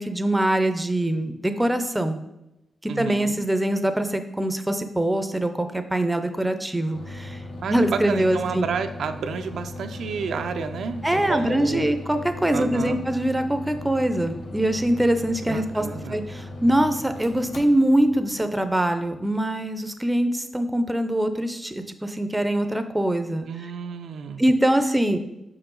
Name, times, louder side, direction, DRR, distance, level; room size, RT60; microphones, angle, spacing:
voice 1, 0.0-2.2 2.8-7.4 7.7-8.6 11.0-21.7 22.0-23.5 24.4-25.2, right 1 dB, 10° right, 8 dB, 0.5 m, -23 dB
voice 2, 2.9-3.5 7.6-11.9 12.5-13.0 15.5-16.2 23.5-24.4, right 6 dB, 90° right, 7 dB, 0.4 m, -31 dB
sound 1, 6.9-19.5, left 2 dB, 70° left, 0.9 m, -38 dB
6.1 x 4.7 x 3.8 m, 0.89 s
wide cardioid pair, 135°, 0 cm